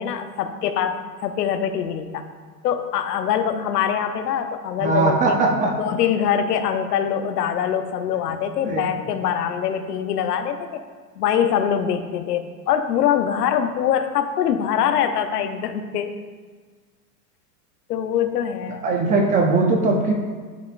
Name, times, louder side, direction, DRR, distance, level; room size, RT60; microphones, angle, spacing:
voice 1, 0.0-2.3 2.6-5.3 5.8-10.8 11.2-16.1 17.9-18.8, left 8 dB, 80° left, 9 dB, 0.8 m, -23 dB
voice 2, 4.8-5.7 8.6-8.9 18.8-20.1, right 3 dB, 15° right, 1 dB, 0.4 m, -19 dB
11.5 x 5.3 x 2.5 m, 1.5 s
supercardioid pair, 135°, 47 cm